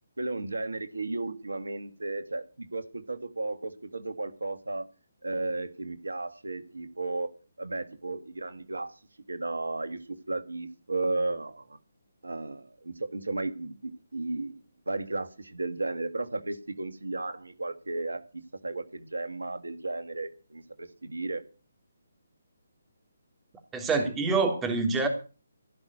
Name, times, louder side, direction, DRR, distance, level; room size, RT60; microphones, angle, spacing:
voice 1, 0.2-4.9 5.2-7.3 7.6-9.0 9.3-11.8 12.2-14.6 14.9-21.4, right 2 dB, 75° right, 1.7 m, -34 dB
voice 2, 23.7-25.1, right 4 dB, 10° right, 3.4 m, -26 dB
16.5 x 6.0 x 9.8 m
figure-of-eight pair, 140°, 0 cm